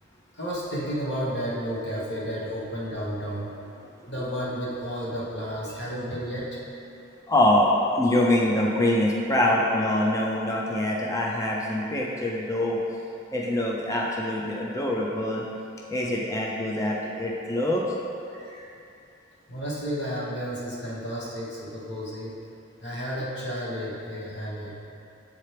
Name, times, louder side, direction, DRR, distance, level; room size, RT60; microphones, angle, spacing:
voice 1, 0.4-3.5 4.1-6.6 18.3-18.7 19.5-22.3 22.8-24.7, equal, 55° left, -6 dB, 1.3 m, -32 dB
voice 2, 7.3-12.8 13.3-15.4 15.9-17.8, left 1 dB, 15° left, -3 dB, 0.5 m, -24 dB
7.6 x 4.4 x 3.3 m, 2.6 s
head